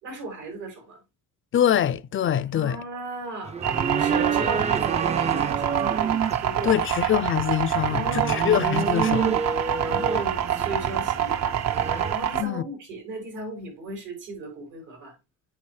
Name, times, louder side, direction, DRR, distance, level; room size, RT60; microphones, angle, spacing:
voice 1, 0.0-1.0 2.5-3.6 4.0-5.8 6.4-6.8 7.9-8.5 9.0-9.4 9.8-11.7 12.1-15.1, right 2 dB, 85° right, 4.7 m, -36 dB
voice 2, 1.5-2.8 6.6-9.2 12.4-12.6, left 10 dB, 45° left, 0.4 m, -24 dB
sound 1, 3.4-12.1, right 6 dB, 20° right, 0.4 m, -29 dB
sound 2, 3.6-12.4, right 9 dB, 60° right, 0.7 m, -26 dB
8.5 x 4.9 x 3.1 m
cardioid pair, 90°, 30 cm